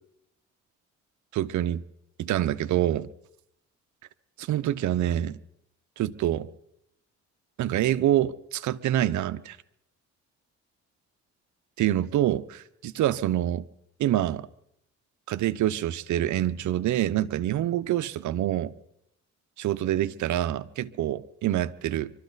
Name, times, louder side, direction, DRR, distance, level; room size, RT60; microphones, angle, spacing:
voice 1, 1.3-1.8 2.2-3.1 4.4-5.4 6.0-6.5 7.6-9.6 11.8-13.7 14.0-14.5 15.3-18.7 19.6-22.1, right 12 dB, 75° right, 0.8 m, -26 dB
24.0 x 13.0 x 4.0 m
cardioid pair, 90°, 30 cm